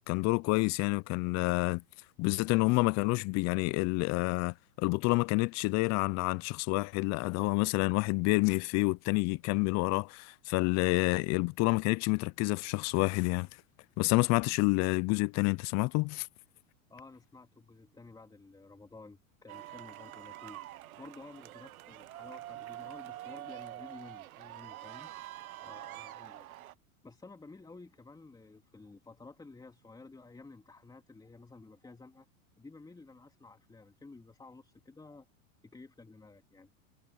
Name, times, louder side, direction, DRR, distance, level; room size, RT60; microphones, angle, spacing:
voice 1, 0.1-1.8 2.2-13.5 14.0-16.3, left 26 dB, 40° left, 0.7 m, -28 dB
voice 2, 16.9-25.1 25.6-26.5 27.0-32.3 32.6-35.3 35.6-36.7, left 3 dB, 10° left, 2.8 m, -53 dB
sound 1, 19.5-26.7, right 14 dB, 75° right, 1.1 m, -46 dB
hypercardioid pair, 110°, 42 cm